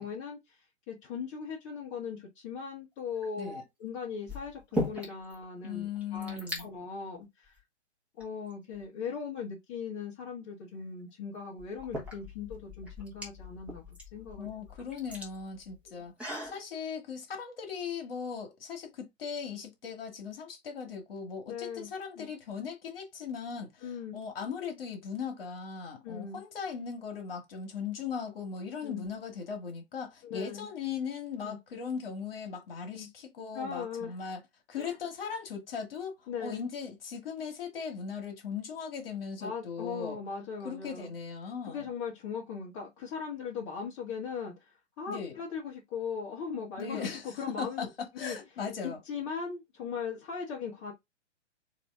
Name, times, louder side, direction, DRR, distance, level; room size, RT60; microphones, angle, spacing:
voice 1, 0.0-7.6 8.2-14.6 15.8-16.0 21.5-21.9 22.2-22.3 23.8-24.2 26.0-26.4 28.8-29.0 30.2-30.7 31.4-31.6 32.9-33.1 33.5-34.2 34.7-35.0 36.3-36.6 39.4-41.1 41.6-47.9 48.1-48.4 48.8-50.9, left 6 dB, 25° left, 1.1 m, -39 dB
sound 1, 3.1-3.5 4.3-5.4 5.6-5.7 6.0-6.6 7.5-7.6 8.2-9.1 10.8-10.9 11.6-16.6, equal, 5° right, 1.2 m, -39 dB
voice 2, 5.6-6.7 14.4-16.1 16.4-34.4 34.7-40.2 40.6-41.9 45.1-45.4 46.8-49.0, left 6 dB, 50° left, 1.5 m, -38 dB
4.1 x 2.8 x 3.4 m
figure-of-eight pair, 125°, 36 cm